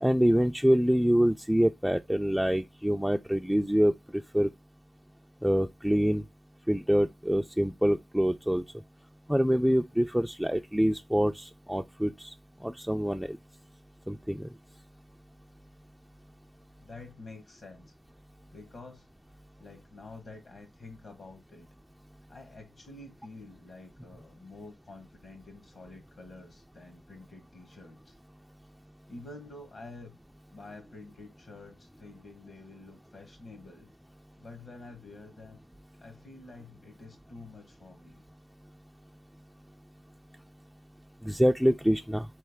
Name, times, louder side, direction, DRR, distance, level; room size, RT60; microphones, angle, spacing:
voice 1, 0.0-4.5 5.4-6.2 6.7-8.6 9.3-12.3 12.6-13.4 14.1-14.5 41.2-42.3, equal, 5° right, 0.3 m, -26 dB
voice 2, 16.8-18.0 18.5-21.7 22.3-28.2 28.6-28.7 29.1-30.2 30.5-33.9 34.4-35.6 35.9-38.3, left 2 dB, 60° left, 1.1 m, -49 dB
3.8 x 3.2 x 3.4 m
cardioid pair, 60°, 0 cm